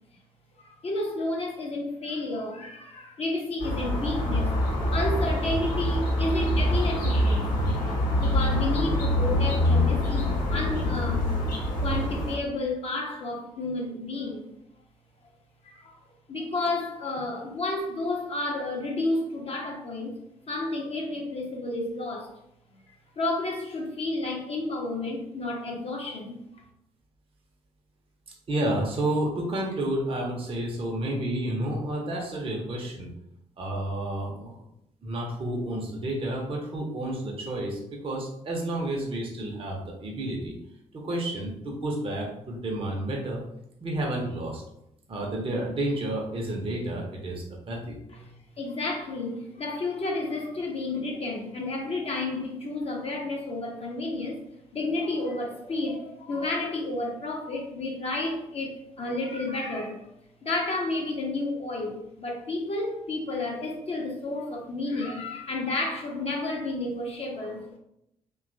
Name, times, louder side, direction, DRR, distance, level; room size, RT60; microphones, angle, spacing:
voice 1, 0.6-4.6 4.9-7.8 8.2-11.3 11.8-14.5 15.6-15.9 16.3-20.1 20.5-22.3 23.2-26.6 48.1-54.4 54.7-60.1 60.4-67.8, left 2 dB, 35° left, 0 dB, 0.6 m, -31 dB
sound 1, 3.6-12.4, left 1 dB, 55° left, 1.0 m, -25 dB
voice 2, 28.5-33.1 33.6-34.6 35.0-40.6 40.9-43.4 43.8-44.6 45.1-48.0, right 1 dB, 35° right, -1 dB, 0.7 m, -30 dB
2.8 x 2.2 x 2.5 m, 0.79 s
figure-of-eight pair, 45°, 17 cm